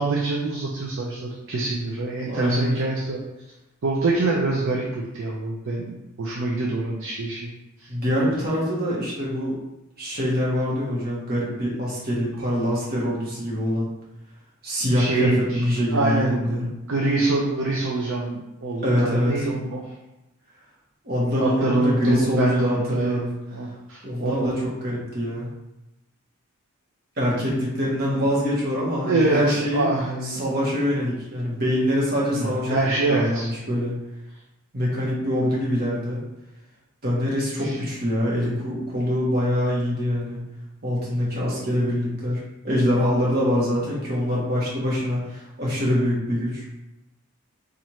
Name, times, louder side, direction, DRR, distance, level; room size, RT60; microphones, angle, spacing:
voice 1, 0.0-3.2 3.8-7.5 7.8-7.9 14.9-19.8 21.4-24.5 28.1-28.3 29.1-30.4 32.3-33.5 37.6-37.8, right 2 dB, 60° right, -3 dB, 0.5 m, -25 dB
voice 2, 2.3-2.8 7.9-9.6 10.0-13.9 14.6-16.7 18.8-19.6 21.0-23.3 24.0-25.5 27.2-29.9 30.2-32.8 33.1-34.0 34.7-36.2 37.0-40.4 40.8-46.6, equal, 45° right, -5 dB, 1.2 m, -24 dB
4.2 x 2.5 x 3.1 m, 0.95 s
head